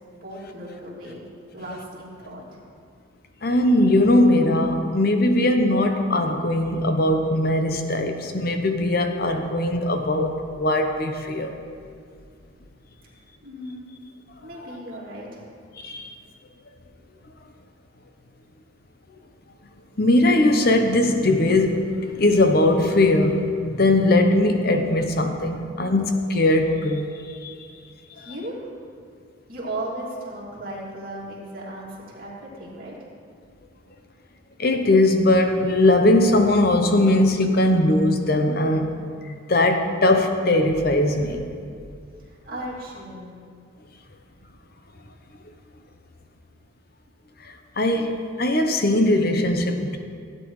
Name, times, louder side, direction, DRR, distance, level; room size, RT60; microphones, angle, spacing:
voice 1, 0.2-1.2 1.5-2.6 13.4-13.9 14.4-15.4 28.1-28.7 29.5-33.0 42.2-43.4, right 1 dB, 45° right, -6 dB, 2.7 m, -36 dB
voice 2, 3.4-11.5 15.8-16.1 20.0-27.5 28.2-28.3 34.6-38.9 39.3-41.5 47.8-50.0, left 1 dB, 45° left, 5 dB, 0.8 m, -20 dB
16.0 x 9.2 x 3.2 m, 2.3 s
head